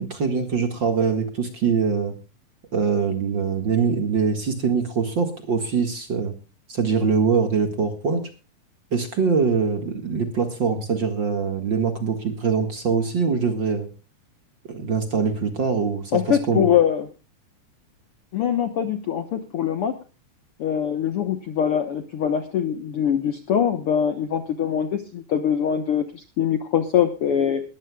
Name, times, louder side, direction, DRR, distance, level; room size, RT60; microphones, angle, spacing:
voice 1, 0.0-2.1 2.7-6.3 6.7-8.3 8.9-13.9 14.7-16.7, right 5 dB, 40° right, 7 dB, 1.9 m, -23 dB
voice 2, 16.1-17.1 18.3-19.9 20.6-27.6, left 8 dB, 65° left, 8 dB, 1.5 m, -23 dB
21.0 x 14.5 x 2.3 m, 0.32 s
omnidirectional pair, 3.9 m